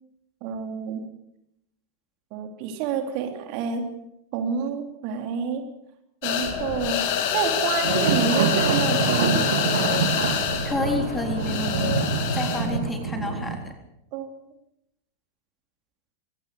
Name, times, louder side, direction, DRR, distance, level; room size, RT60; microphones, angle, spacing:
voice 1, 0.4-1.0 2.3-3.8 4.3-5.6 6.2-9.4 14.1-14.3, right 7 dB, 45° right, 5 dB, 3.3 m, -28 dB
sound 1, 6.2-12.8, left 9 dB, 50° left, 2.9 m, -26 dB
sound 2, 7.8-13.6, right 6 dB, 60° right, 2.9 m, -26 dB
voice 2, 10.6-13.7, left 2 dB, 10° left, 4 dB, 3.7 m, -30 dB
24.5 x 18.0 x 6.9 m, 0.81 s
figure-of-eight pair, 90°, 0 cm